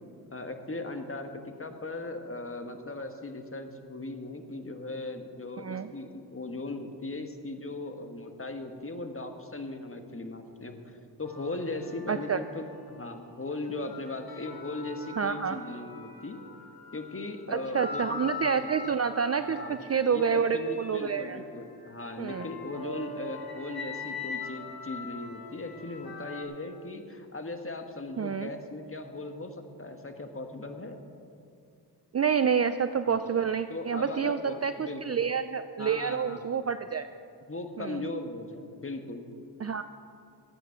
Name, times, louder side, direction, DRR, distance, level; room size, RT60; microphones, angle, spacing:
voice 1, 0.3-16.4 16.9-18.8 19.5-31.0 33.1-33.2 33.7-35.2 35.8-36.4 37.5-39.3, left 2 dB, 30° left, 6 dB, 1.4 m, -38 dB
voice 2, 5.6-5.9 12.1-12.4 15.2-15.6 17.5-21.4 22.2-22.5 28.2-28.5 32.1-37.1 37.8-38.0 39.6-39.8, right 6 dB, 40° right, 11 dB, 0.5 m, -28 dB
sound 1, 11.2-13.1 13.6-26.4, left 4 dB, 60° left, 1.7 m, -43 dB
13.0 x 9.0 x 5.7 m, 2.5 s
cardioid pair, 40°, 41 cm